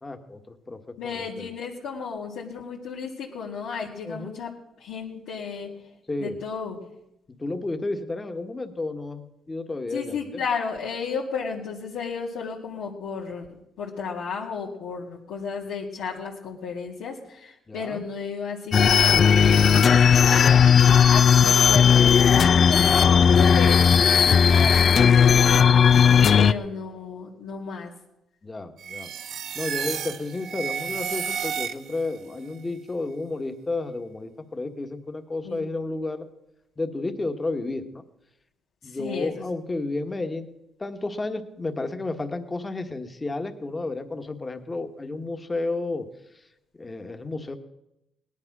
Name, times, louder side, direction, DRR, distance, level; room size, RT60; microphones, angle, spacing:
voice 1, 0.0-1.5 4.0-4.4 6.1-6.4 7.3-10.4 17.7-18.0 20.0-20.7 26.1-26.5 28.4-29.1 29.5-36.3 36.8-38.0 38.8-40.5 40.8-46.1 46.3-46.4 46.8-47.6, left 2 dB, 25° left, 7 dB, 1.5 m, -32 dB
voice 2, 1.0-4.5 4.8-5.8 6.2-6.9 9.9-19.7 20.5-20.7 21.0-25.9 26.4-27.9 35.4-35.7 38.8-39.4, left 5 dB, 85° left, -5 dB, 2.1 m, -33 dB
sound 1, 18.7-26.5, left 7 dB, 55° left, 0.4 m, -16 dB
sound 2, 28.8-32.2, right 8 dB, 70° right, 0.7 m, -32 dB
18.0 x 11.0 x 6.1 m, 0.87 s
cardioid pair, 90°, 0 cm